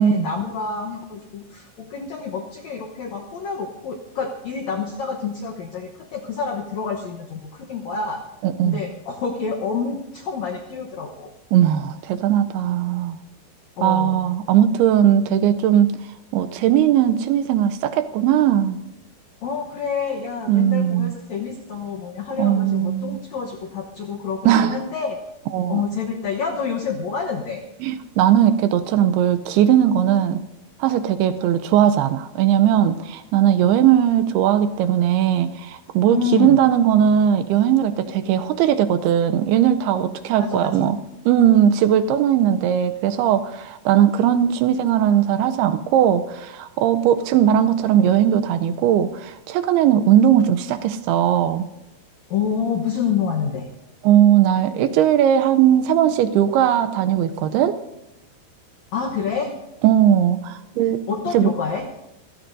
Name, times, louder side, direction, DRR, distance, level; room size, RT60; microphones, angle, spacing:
voice 1, 0.0-8.2 8.6-11.3 13.8-14.2 19.4-25.2 25.7-27.6 36.1-36.6 40.4-40.9 52.3-53.7 58.9-59.5 61.1-61.9, left 6 dB, 80° left, 1 dB, 1.6 m, -28 dB
voice 2, 8.4-8.8 11.5-13.2 13.8-16.0 16.3-18.8 20.5-21.2 22.4-23.2 24.5-24.8 25.5-25.8 27.8-30.4 30.8-41.0 41.3-51.7 54.0-57.8 59.8-61.0 61.3-61.5, right 10 dB, 80° right, 9 dB, 2.5 m, -18 dB
25.5 x 16.5 x 2.6 m, 0.89 s
omnidirectional pair, 4.8 m